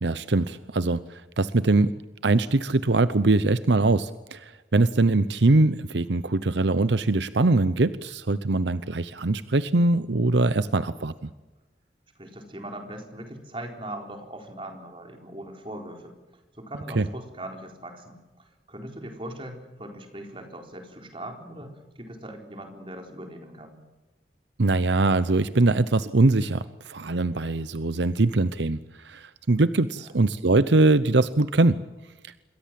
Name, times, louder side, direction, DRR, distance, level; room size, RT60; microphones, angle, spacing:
voice 1, 0.0-2.0 2.2-11.1 17.0-17.1 24.6-31.8, right 2 dB, 75° right, 15 dB, 0.8 m, -22 dB
voice 2, 12.2-16.1 16.6-18.2 18.7-23.8 29.9-30.1, right 1 dB, 30° right, 4 dB, 4.2 m, -40 dB
27.5 x 22.0 x 7.7 m, 1.1 s
head